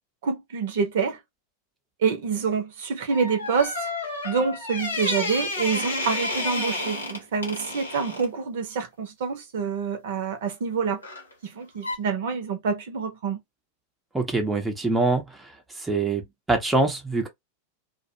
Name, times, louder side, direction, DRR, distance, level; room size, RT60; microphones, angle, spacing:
voice 1, 0.2-1.2 2.0-3.9 4.2-11.0 11.4-13.4, right 5 dB, 55° right, 0.7 m, -27 dB
sound 1, 3.1-8.3 11.0-11.3 11.8-12.0, left 2 dB, 75° left, 1.0 m, -31 dB
voice 2, 14.1-15.5 15.8-16.2 16.5-17.3, right 3 dB, 10° right, 0.7 m, -24 dB
2.4 x 2.1 x 2.7 m
figure-of-eight pair, 90°, 0 cm